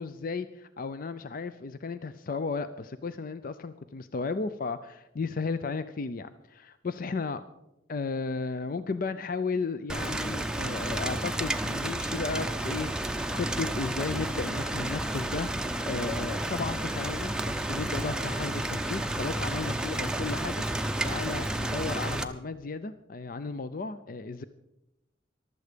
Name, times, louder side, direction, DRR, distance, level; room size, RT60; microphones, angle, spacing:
voice 1, 0.0-7.4 7.9-24.4, left 4 dB, 50° left, 12 dB, 0.5 m, -34 dB
Rain, 9.9-22.2, right 1 dB, 5° right, 0.6 m, -31 dB
15.0 x 12.0 x 5.1 m, 0.90 s
head